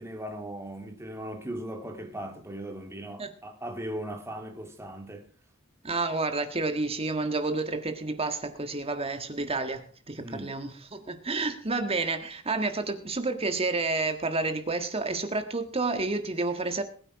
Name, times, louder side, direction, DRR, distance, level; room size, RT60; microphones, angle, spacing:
voice 1, 0.0-5.3 10.2-10.5, right 1 dB, 15° right, 2.3 m, -38 dB
voice 2, 5.8-16.8, right 3 dB, 30° right, 1.7 m, -30 dB
20.0 x 8.9 x 4.8 m
head